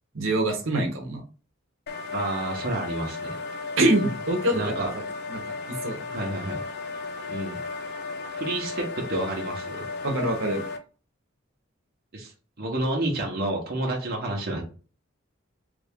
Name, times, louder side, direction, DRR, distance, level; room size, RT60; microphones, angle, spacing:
voice 1, 0.1-1.2 3.8-4.9 5.3-5.5 5.8-6.0 10.0-10.6, right 1 dB, 80° right, 1 dB, 1.0 m, -24 dB
sound 1, 1.9-10.8, left 3 dB, 55° left, 0.5 m, -35 dB
voice 2, 2.1-3.4 4.5-4.9 6.1-6.6 7.3-7.6 8.3-9.8 12.1-12.3 12.6-14.6, right 1 dB, 50° right, -1 dB, 0.9 m, -29 dB
3.4 x 2.4 x 3.5 m, 0.37 s
head